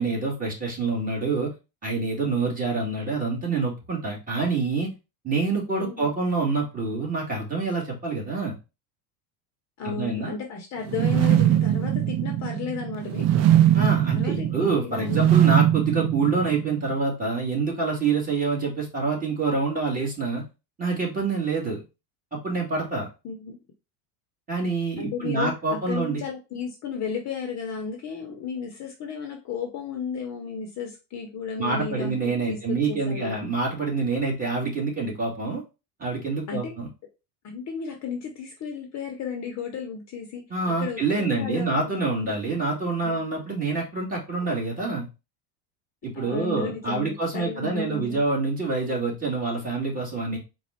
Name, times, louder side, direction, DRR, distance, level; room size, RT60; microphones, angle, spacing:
voice 1, 0.0-1.5 1.8-4.9 5.2-8.6 9.8-10.3 13.7-20.4 20.8-21.8 22.3-23.1 24.5-26.2 31.6-35.6 36.0-36.9 40.5-45.1 46.0-50.4, right 3 dB, 15° right, -3 dB, 1.9 m, -26 dB
voice 2, 9.8-13.5 14.1-14.6 14.8-15.2 23.2-23.6 25.0-25.5 25.9-33.5 36.5-36.8 37.4-40.5 40.8-42.3 43.0-43.2 44.4-44.6 46.1-48.2, left 6 dB, 35° left, 3 dB, 0.9 m, -34 dB
sound 1, 10.8-16.9, right 12 dB, 35° right, 0.4 m, -21 dB
4.1 x 2.4 x 4.2 m, 0.29 s
supercardioid pair, 125°, 48 cm